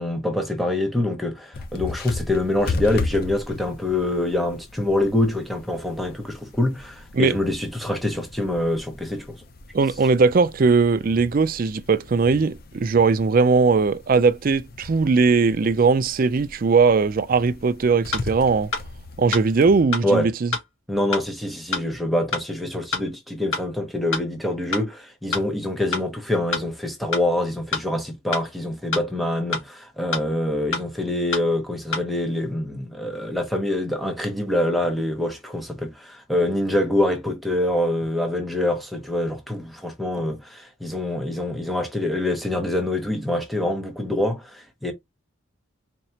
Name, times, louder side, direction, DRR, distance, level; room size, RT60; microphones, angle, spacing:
voice 1, 0.0-9.4 20.0-20.3 20.9-44.9, left 1 dB, ahead, 0.7 m, -25 dB
sound 1, 1.5-19.8, left 3 dB, 45° left, 0.6 m, -37 dB
voice 2, 9.7-18.7 19.2-20.5, right 4 dB, 40° right, 0.4 m, -19 dB
sound 2, 18.1-18.2 18.7-18.8 19.3-19.4 19.9-20.0 20.5-20.6 21.1-21.2 21.7-21.8 22.3-22.4 22.9-23.0 23.5-23.6 24.1-24.2 24.7-24.8 25.3-25.4 25.9-26.0 26.5-26.6 27.1-27.2 27.7-27.8 28.3-28.4 28.9-29.0 29.5-29.6 30.1-30.2 30.7-30.8 31.3-31.4 31.9-32.0, left 4 dB, 65° left, 1.8 m, -25 dB
4.4 x 2.8 x 2.8 m
head